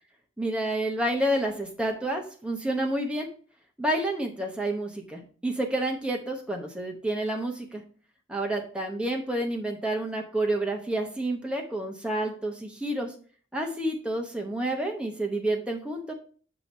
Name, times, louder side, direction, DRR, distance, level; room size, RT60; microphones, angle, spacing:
voice 1, 0.4-3.3 3.8-7.8 8.3-13.1 13.5-16.1, right 1 dB, 5° right, 1 dB, 0.9 m, -29 dB
7.6 x 2.9 x 5.2 m, 0.42 s
head